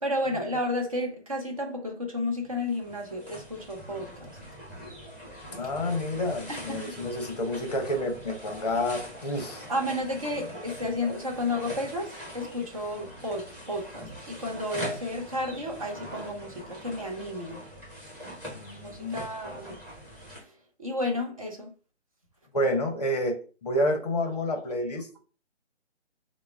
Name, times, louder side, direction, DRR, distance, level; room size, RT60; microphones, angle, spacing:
voice 1, 0.0-4.3 6.5-6.9 9.7-17.6 18.8-19.8 20.8-21.7, left 1 dB, 30° right, 0.6 m, -32 dB
sound 1, 2.4-20.4, equal, 5° right, 1.4 m, -43 dB
voice 2, 5.5-9.7 18.5-19.2 19.7-19.8 22.5-25.2, left 1 dB, 35° left, 0.7 m, -29 dB
3.3 x 2.1 x 3.3 m
figure-of-eight pair, 150°, 35 cm